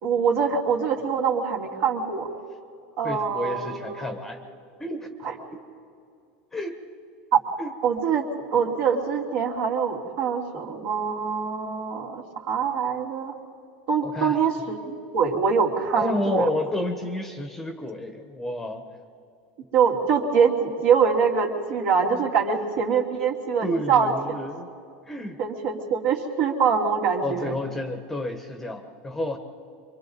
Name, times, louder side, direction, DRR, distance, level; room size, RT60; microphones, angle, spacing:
voice 1, 0.0-2.3 3.0-4.1 5.2-5.3 7.3-7.4 7.8-8.2 8.5-13.3 13.9-16.5 19.7-24.1 25.4-27.5, right 6 dB, 60° right, 0 dB, 3.1 m, -24 dB
voice 2, 3.0-4.4 4.8-5.1 5.5-5.6 6.5-6.8 7.6-7.7 14.0-14.4 15.9-18.8 23.6-24.7 25.0-25.4 27.2-29.4, left 1 dB, 5° left, 6 dB, 1.0 m, -30 dB
27.5 x 24.0 x 4.1 m, 2.6 s
supercardioid pair, 160°, 5 cm